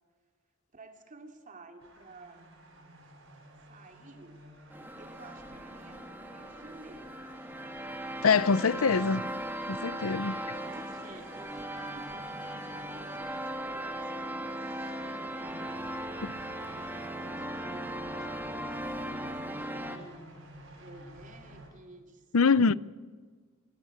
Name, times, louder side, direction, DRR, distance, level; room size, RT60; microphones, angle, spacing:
voice 1, 0.7-2.6 3.7-7.3 10.2-22.8, right 2 dB, 40° right, 3.0 m, -53 dB
sound 1, 1.8-21.7, right 1 dB, 70° right, 7.8 m, -53 dB
sound 2, 4.7-20.0, right 1 dB, 10° right, 2.3 m, -38 dB
voice 2, 8.2-9.3 9.7-10.4 22.3-22.7, left 5 dB, 85° left, 0.7 m, -24 dB
29.5 x 17.0 x 8.9 m
head